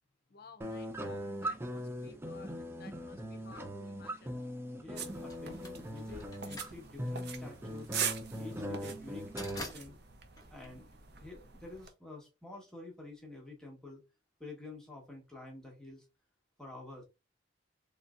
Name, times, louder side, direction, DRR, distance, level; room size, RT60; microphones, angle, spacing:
voice 1, 0.3-4.4, left 4 dB, 55° left, 0.6 m, -57 dB
sound 1, 0.6-9.6, equal, 15° right, 0.5 m, -40 dB
voice 2, 4.8-7.9 8.4-10.0 10.5-10.9 11.2-14.0 14.4-16.1 16.6-17.0, left 2 dB, 5° left, 1.3 m, -49 dB
sound 2, 5.0-11.9, right 7 dB, 60° right, 0.7 m, -43 dB
sound 3, 5.3-11.4, left 2 dB, 20° left, 1.0 m, -48 dB
4.1 x 3.2 x 2.5 m
head